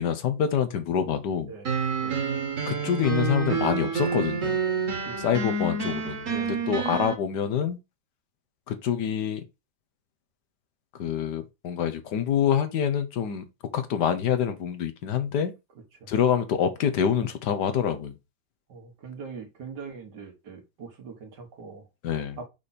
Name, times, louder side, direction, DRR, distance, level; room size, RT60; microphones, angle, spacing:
voice 1, 0.0-1.5 2.7-4.6 5.2-7.8 8.7-9.4 11.0-13.4 13.7-15.5 16.1-18.1 22.0-22.4, left 8 dB, 80° left, 1.6 m, -26 dB
sound 1, 1.6-7.1, right 5 dB, 50° right, 1.6 m, -28 dB
voice 2, 5.0-5.4 6.2-6.8 16.0-16.1 18.7-21.9 22.4-22.5, right 5 dB, 80° right, 2.2 m, -42 dB
5.6 x 5.1 x 4.2 m
omnidirectional pair, 1.8 m